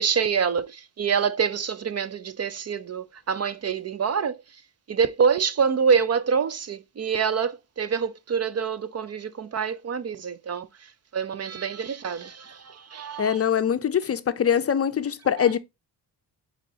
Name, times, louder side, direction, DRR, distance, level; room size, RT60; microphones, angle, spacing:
voice 1, 0.0-4.4 4.9-10.7 11.1-13.4 15.4-15.5, right 6 dB, 40° right, 0.5 m, -26 dB
voice 2, 13.2-15.6, left 8 dB, 35° left, 0.5 m, -23 dB
8.3 x 4.2 x 2.8 m
cardioid pair, 100°, 40 cm